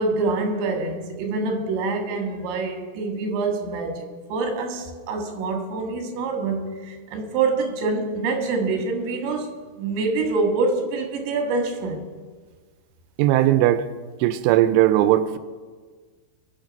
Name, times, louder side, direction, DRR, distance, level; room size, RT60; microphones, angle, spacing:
voice 1, 0.0-9.5 9.8-12.0, right 3 dB, 70° right, 3.9 m, -26 dB
voice 2, 13.2-13.9 14.2-15.4, right 13 dB, 90° right, 3.1 m, -18 dB
22.5 x 8.1 x 5.3 m
omnidirectional pair, 5.6 m